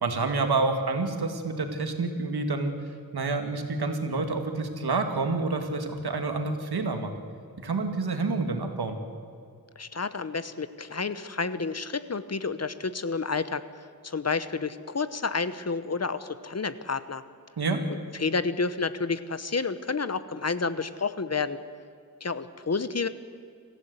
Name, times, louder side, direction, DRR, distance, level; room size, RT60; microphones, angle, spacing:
voice 1, 0.0-2.7 3.1-7.1 7.6-9.0 17.6-17.8, right 3 dB, 90° right, 5 dB, 2.4 m, -28 dB
voice 2, 9.8-13.6 14.0-17.2 17.9-21.6 22.2-23.1, left 4 dB, 45° left, 13 dB, 1.0 m, -30 dB
26.0 x 15.5 x 8.1 m, 2.3 s
wide cardioid pair, 95°, 37 cm